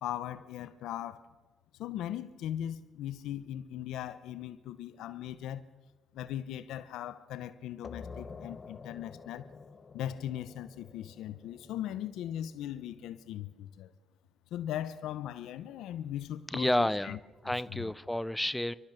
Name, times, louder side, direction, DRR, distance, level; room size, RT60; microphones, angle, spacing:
voice 1, 0.0-1.2 1.8-5.6 6.1-9.5 9.9-13.9 14.5-17.2 17.7-17.9, left 11 dB, 85° left, 0.9 m, -39 dB
sound 1, 7.8-13.2, left 5 dB, 40° left, 1.3 m, -49 dB
voice 2, 16.5-17.2 17.4-18.7, left 1 dB, 5° left, 0.6 m, -30 dB
29.5 x 13.0 x 6.6 m
cardioid pair, 90°, 0 cm